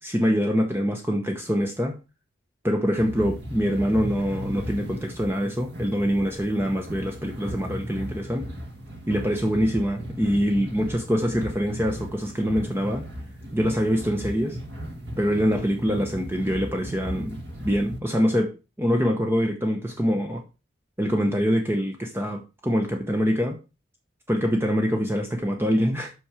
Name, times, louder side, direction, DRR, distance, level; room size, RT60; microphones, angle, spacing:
voice 1, 0.0-2.0 2.6-8.5 9.1-13.0 13.5-14.6 15.2-20.4 21.0-23.6 24.3-26.1, equal, 10° right, 3 dB, 0.9 m, -24 dB
sound 1, 3.0-18.0, equal, 65° right, 1.9 m, -36 dB
7.3 x 6.2 x 4.9 m, 0.30 s
head